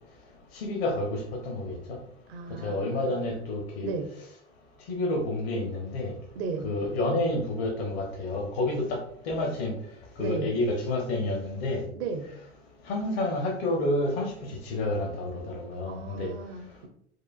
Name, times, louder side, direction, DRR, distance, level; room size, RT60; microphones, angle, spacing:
voice 1, 0.5-2.0 2.6-3.9 4.9-6.1 6.6-9.7 10.2-11.8 12.9-16.3, left 2 dB, 65° left, 1.0 m, -29 dB
voice 2, 2.3-3.2 3.8-4.1 6.3-6.7 10.2-10.5 12.0-12.3 15.9-16.9, right 4 dB, 60° right, 0.6 m, -35 dB
4.8 x 2.3 x 2.3 m
figure-of-eight pair, 75°, 34 cm